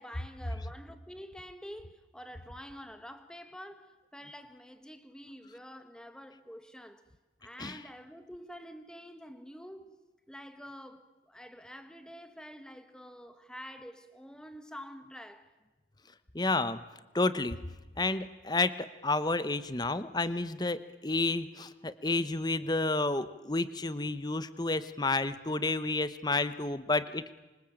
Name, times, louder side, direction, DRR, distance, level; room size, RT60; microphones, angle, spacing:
voice 1, 0.0-7.0 7.4-10.0 10.3-15.5, equal, 5° left, 1.7 m, -48 dB
voice 2, 16.3-16.8 17.1-17.6 18.0-27.4, left 2 dB, 25° left, 1.1 m, -30 dB
26.5 x 24.5 x 8.9 m
head